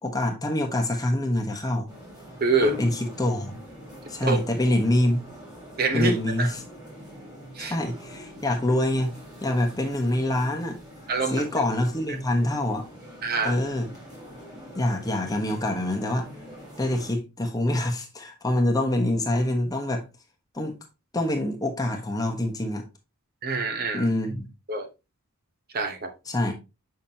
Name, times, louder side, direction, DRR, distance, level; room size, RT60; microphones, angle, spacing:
voice 1, 0.0-1.9 2.8-3.6 4.1-5.2 5.9-6.6 7.6-9.1 9.4-10.8 11.3-12.9 13.4-13.9 14.7-16.3 16.8-20.0 20.5-20.7 21.1-22.9 23.9-24.5 26.3-26.5, left 1 dB, 15° left, 1.1 m, -25 dB
sound 1, 1.9-17.1, left 1 dB, 20° right, 3.5 m, -43 dB
voice 2, 2.4-2.8 4.2-4.4 5.8-6.5 7.6-7.7 11.1-11.6 13.2-13.6 23.4-24.1 24.7-24.9 25.7-26.1, right 3 dB, 45° right, 0.9 m, -26 dB
7.2 x 5.8 x 2.8 m
head